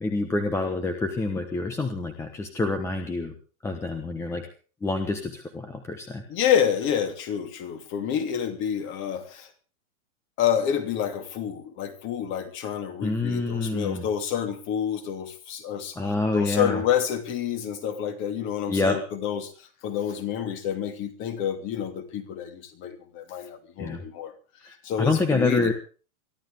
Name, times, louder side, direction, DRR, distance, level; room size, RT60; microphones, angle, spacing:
voice 1, 0.0-3.3 3.6-4.5 4.8-6.2 13.0-14.0 16.0-16.8 18.7-19.0 23.8-24.0 24.6-25.7, left 3 dB, 5° left, 1.2 m, -27 dB
voice 2, 6.3-9.5 10.4-16.0 16.3-24.3 24.6-25.7, left 9 dB, 30° left, 2.8 m, -28 dB
23.5 x 14.5 x 3.6 m
supercardioid pair, 170°, 41 cm